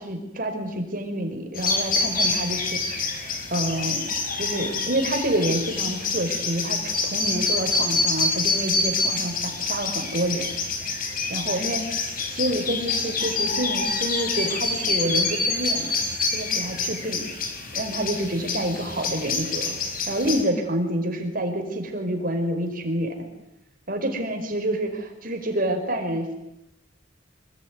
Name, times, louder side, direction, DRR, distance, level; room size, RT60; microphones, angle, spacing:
voice 1, 0.0-2.7 3.1-4.1 4.4-10.4 11.3-11.8 12.3-15.9 16.3-17.3 17.7-19.8 20.1-23.3 23.9-26.3, right 1 dB, 50° right, 5 dB, 5.1 m, -28 dB
sound 1, 1.5-20.4, left 3 dB, 50° left, 5.1 m, -27 dB
26.0 x 21.5 x 9.7 m, 0.87 s
head